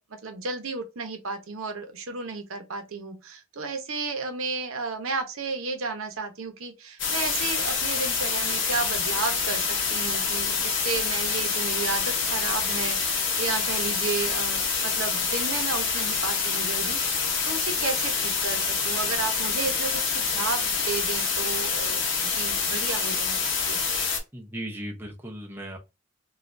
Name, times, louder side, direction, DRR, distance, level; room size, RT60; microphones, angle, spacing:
voice 1, 0.1-23.8, right 4 dB, 90° right, 0.8 m, -33 dB
sound 1, 7.0-24.2, left 5 dB, 60° left, 0.8 m, -26 dB
voice 2, 24.3-25.8, right 1 dB, 10° right, 0.6 m, -36 dB
2.6 x 2.4 x 3.2 m
head